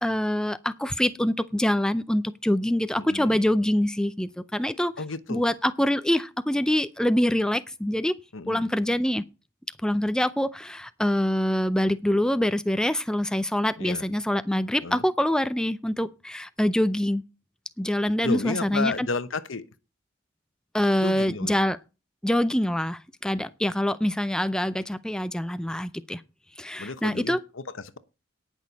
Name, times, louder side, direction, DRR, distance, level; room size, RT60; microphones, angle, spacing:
voice 1, 0.0-4.9 5.3-8.2 8.5-9.2 9.8-17.2 17.8-19.1 20.7-21.8 22.2-26.2 26.6-27.4, left 1 dB, 5° left, 0.4 m, -25 dB
voice 2, 3.0-3.4 5.0-5.4 8.3-8.7 13.8-14.0 14.8-15.0 18.2-19.6 21.0-21.6 26.8-28.0, left 3 dB, 80° left, 1.0 m, -32 dB
18.0 x 6.3 x 4.0 m
head